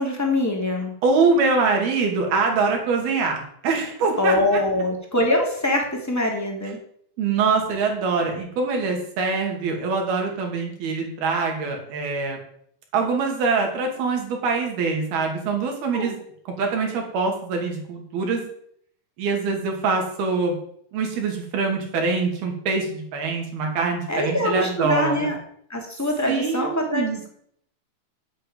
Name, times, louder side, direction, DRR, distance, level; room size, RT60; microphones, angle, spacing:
voice 1, 0.0-0.9 4.2-6.8 15.9-16.1 24.1-25.3 25.7-27.3, left 1 dB, 5° left, 0 dB, 2.5 m, -24 dB
voice 2, 1.0-4.6 7.2-12.4 12.9-16.2 16.6-18.4 19.2-20.6 20.9-25.3 26.3-27.2, right 4 dB, 80° right, 2 dB, 4.7 m, -24 dB
8.7 x 8.7 x 9.1 m, 0.65 s
omnidirectional pair, 4.3 m